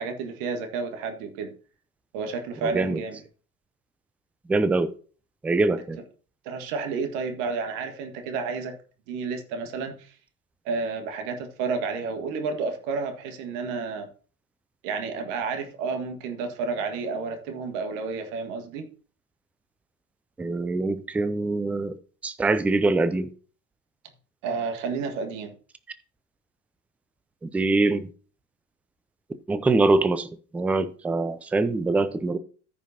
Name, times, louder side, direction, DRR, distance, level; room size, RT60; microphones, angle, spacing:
voice 1, 0.0-1.5 2.1-3.2 6.5-8.7 9.1-10.1 10.7-14.1 14.8-18.9 24.4-25.5, right 4 dB, 55° right, 1.8 m, -31 dB
voice 2, 4.5-4.9 5.4-6.0 20.4-21.9 22.2-23.3 27.4-28.1 29.5-30.3 30.5-32.4, right 3 dB, 5° right, 0.4 m, -23 dB
14.0 x 5.4 x 2.8 m
figure-of-eight pair, 75°, 44 cm